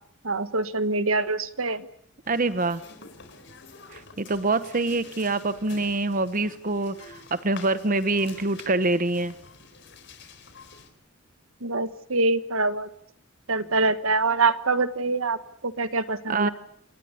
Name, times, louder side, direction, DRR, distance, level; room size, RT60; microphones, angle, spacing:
voice 1, 0.2-1.9 11.6-12.9 13.5-15.4 15.6-16.5, right 3 dB, 80° right, 12 dB, 1.5 m, -24 dB
sound 1, 2.2-10.9, left 4 dB, 55° left, 4.2 m, -48 dB
voice 2, 2.3-2.8 3.9-9.3 16.3-16.5, right 2 dB, 40° right, 13 dB, 1.0 m, -25 dB
29.5 x 19.0 x 8.5 m, 0.67 s
head